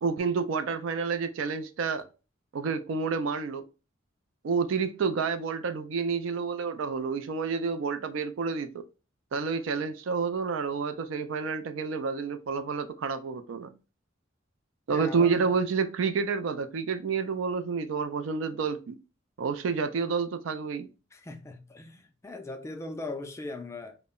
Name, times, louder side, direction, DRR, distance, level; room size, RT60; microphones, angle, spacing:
voice 1, 0.0-2.1 2.5-3.7 4.4-8.9 9.3-13.7 14.9-19.0 19.4-20.9, right 5 dB, 70° right, 0.4 m, -29 dB
voice 2, 14.9-15.5 21.1-24.0, left 2 dB, 15° left, 0.3 m, -39 dB
2.0 x 2.0 x 3.5 m
head